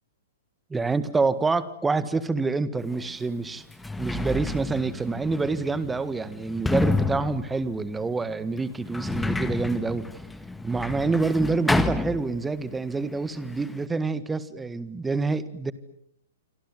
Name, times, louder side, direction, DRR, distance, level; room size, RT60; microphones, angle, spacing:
voice 1, 0.7-3.6 4.0-10.2 10.6-15.7, right 3 dB, 10° right, 15 dB, 1.8 m, -27 dB
Sliding door, 2.9-3.0 3.6-12.8 13.0-13.9, left 3 dB, 5° left, 1.7 m, -30 dB
28.0 x 25.0 x 7.9 m, 0.72 s
figure-of-eight pair, 110°, 0 cm